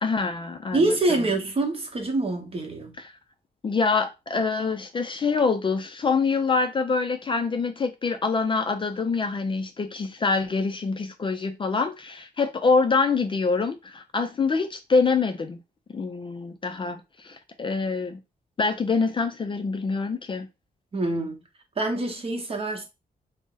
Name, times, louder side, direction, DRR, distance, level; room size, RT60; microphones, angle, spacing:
voice 1, 0.0-1.3 3.0-3.1 3.6-15.6 15.9-18.2 18.6-20.5, left 4 dB, 30° left, 0.3 m, -25 dB
voice 2, 0.7-3.0 20.9-21.4 21.8-22.8, right 2 dB, 35° right, 0.9 m, -25 dB
2.6 x 2.0 x 3.7 m
wide cardioid pair, 120°, 16 cm